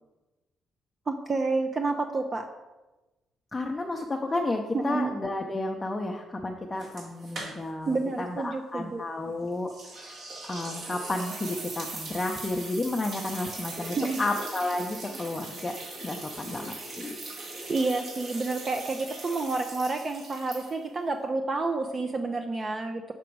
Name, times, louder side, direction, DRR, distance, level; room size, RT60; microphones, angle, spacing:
voice 1, 1.1-2.5 4.7-5.1 7.9-9.0 14.0-14.2 17.7-23.1, right 3 dB, 35° right, 5 dB, 0.5 m, -29 dB
voice 2, 3.5-9.7 10.0-10.2 10.4-15.8 16.0-17.1, left 2 dB, 20° left, 1 dB, 0.6 m, -32 dB
sound 1, 6.8-7.9 8.2-8.3 9.7-21.0, right 2 dB, 60° right, 2.3 m, -40 dB
6.0 x 6.0 x 4.6 m, 1.1 s
cardioid pair, 90°, 0 cm